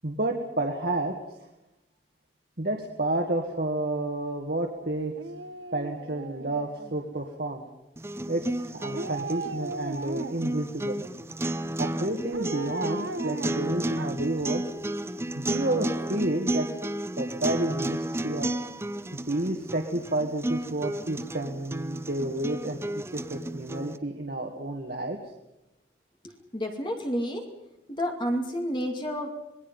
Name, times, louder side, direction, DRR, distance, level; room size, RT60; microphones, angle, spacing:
voice 1, 0.0-1.1 2.6-5.1 5.7-7.7 8.3-11.0 11.8-14.6 15.4-16.9 17.2-18.5 19.1-25.2, right 2 dB, 55° right, 1 dB, 1.9 m, -30 dB
Dog, 5.1-7.2 8.9-10.6 12.3-14.4 14.8-14.9, right 3 dB, 85° right, 1.0 m, -37 dB
sound 1, 8.0-24.0, right 1 dB, 15° right, 0.7 m, -33 dB
voice 2, 26.2-27.5 27.9-29.3, equal, 25° left, 3 dB, 2.4 m, -30 dB
26.5 x 21.5 x 5.6 m, 0.96 s
head